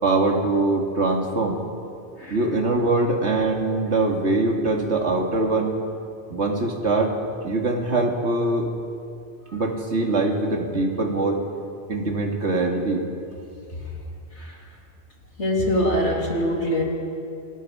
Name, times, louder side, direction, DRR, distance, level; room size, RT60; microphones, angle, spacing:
voice 1, 0.0-1.6 2.3-5.7 6.3-7.1 7.4-8.7 9.5-11.4 11.9-13.0, right 2 dB, 75° right, 1 dB, 2.6 m, -22 dB
voice 2, 15.4-16.8, equal, 85° left, -1 dB, 3.5 m, -23 dB
27.0 x 20.5 x 5.0 m, 2.5 s
omnidirectional pair, 1.1 m